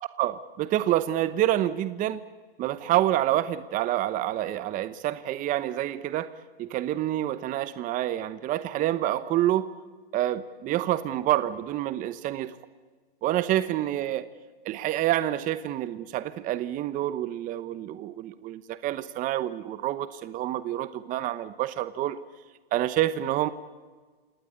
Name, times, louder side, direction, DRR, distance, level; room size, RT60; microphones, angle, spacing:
voice 1, 0.2-2.2 2.6-6.3 6.6-9.7 10.1-12.5 13.2-14.2 14.6-22.2 22.7-23.5, right 13 dB, 25° right, 13 dB, 0.9 m, -27 dB
28.0 x 18.5 x 8.5 m, 1.4 s
hypercardioid pair, 125°, 30 cm